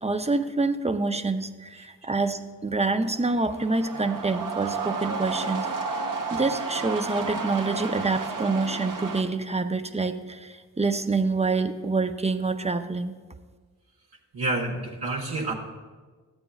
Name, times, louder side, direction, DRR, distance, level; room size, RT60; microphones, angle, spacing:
voice 1, 0.0-5.7 6.3-13.1, right 3 dB, 15° right, 9 dB, 0.6 m, -26 dB
sound 1, 3.1-9.2, right 4 dB, 55° right, 1.1 m, -32 dB
voice 2, 14.3-15.5, right 2 dB, 70° right, -3 dB, 1.4 m, -28 dB
12.5 x 8.9 x 2.4 m, 1.4 s
supercardioid pair, 45°, 39 cm